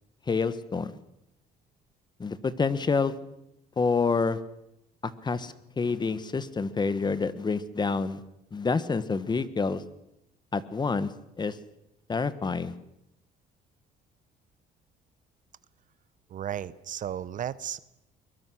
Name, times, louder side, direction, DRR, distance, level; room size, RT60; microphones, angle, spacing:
voice 1, 0.3-0.9 2.2-3.2 3.8-4.4 5.0-8.2 8.5-9.8 10.5-11.1 11.4-11.6 12.1-12.7, left 4 dB, 25° left, 15 dB, 1.3 m, -28 dB
voice 2, 16.3-17.8, right 10 dB, 50° right, 18 dB, 0.9 m, -34 dB
22.5 x 21.0 x 6.3 m, 0.84 s
cardioid pair, 110°, 17 cm